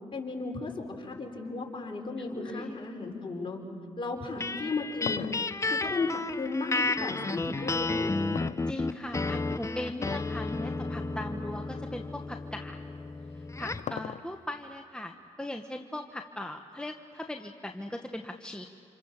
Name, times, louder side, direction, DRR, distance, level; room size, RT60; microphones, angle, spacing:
voice 1, 0.1-3.6 4.0-5.3 5.7-8.3, left 3 dB, 40° left, 0 dB, 5.2 m, -35 dB
voice 2, 2.3-2.7 4.4-4.7 7.4-7.7 8.7-12.8 13.6-18.6, left 1 dB, 5° left, 4 dB, 1.4 m, -39 dB
sound 1, 4.4-13.9, left 3 dB, 25° left, 0.9 m, -32 dB
sound 2, 4.5-7.0 8.3-9.2 9.9-10.4 10.7-10.8 11.6-11.7 13.1-14.6, left 9 dB, 70° left, 0.7 m, -40 dB
29.0 x 27.5 x 7.3 m, 2.6 s
cardioid pair, 60°, 13 cm